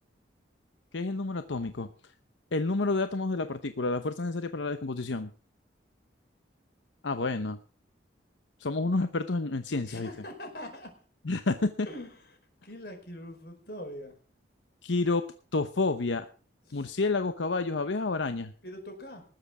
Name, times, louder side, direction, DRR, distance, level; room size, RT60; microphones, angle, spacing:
voice 1, 0.9-1.9 2.5-5.3 7.0-7.6 8.6-10.1 11.3-11.9 14.8-15.3 15.5-16.3 16.7-18.5, left 3 dB, 85° left, 9 dB, 0.9 m, -29 dB
voice 2, 9.9-10.9 11.9-12.4 12.6-14.2 16.7-16.9 18.6-19.2, left 1 dB, 55° left, 4 dB, 5.0 m, -43 dB
19.5 x 7.7 x 6.0 m, 0.40 s
head